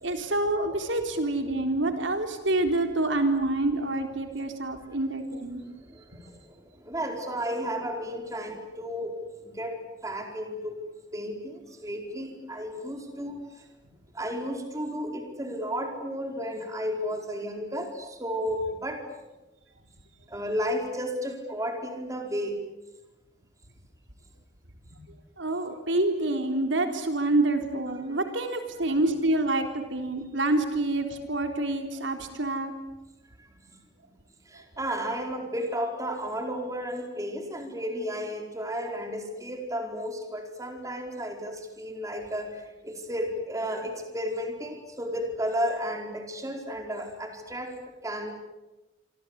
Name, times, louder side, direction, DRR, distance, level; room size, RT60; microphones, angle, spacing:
voice 1, 0.0-5.6 24.9-25.0 25.4-32.7, right 2 dB, 85° right, 6 dB, 3.7 m, -27 dB
voice 2, 5.6-9.1 9.4-9.8 10.0-10.8 11.1-13.4 14.1-19.0 20.3-22.6 28.1-28.2 33.4-33.5 34.5-47.8 48.0-48.3, equal, 20° right, 3 dB, 4.7 m, -33 dB
27.0 x 26.0 x 8.3 m, 1.1 s
head